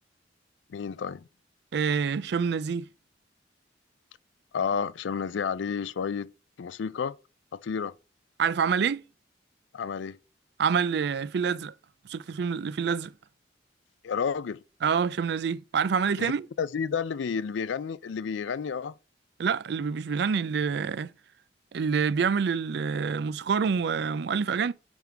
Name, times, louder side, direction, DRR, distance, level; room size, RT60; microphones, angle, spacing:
voice 1, 0.7-1.3 4.5-6.3 6.6-7.2 7.5-7.9 9.7-10.2 14.0-14.6 16.2-16.3 16.6-18.9, left 6 dB, 80° left, 0.4 m, -31 dB
voice 2, 1.7-2.9 8.4-9.0 10.6-11.7 12.1-13.1 14.8-16.5 19.4-21.1 21.7-24.7, right 6 dB, 60° right, 0.4 m, -27 dB
9.4 x 3.6 x 4.5 m
head